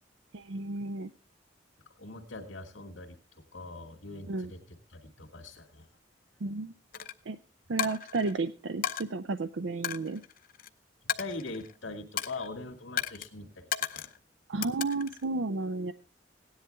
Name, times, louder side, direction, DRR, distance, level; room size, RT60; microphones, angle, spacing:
voice 1, 0.3-1.1 4.3-4.5 6.4-6.7 7.3-7.4 7.7-10.2 14.5-15.9, right 3 dB, 75° right, 11 dB, 0.6 m, -32 dB
voice 2, 2.0-3.2 3.5-5.9 11.2-13.6 13.9-14.0, left 3 dB, 90° left, -2 dB, 2.3 m, -42 dB
Coin (dropping), 6.9-7.1 7.8-8.3 8.8-9.0 9.8-10.7 11.1-11.8 12.2-12.5 13.0-13.3 13.7-14.2 14.6-15.2, left 9 dB, 45° left, 0.7 m, -34 dB
17.0 x 10.5 x 3.5 m, 0.33 s
head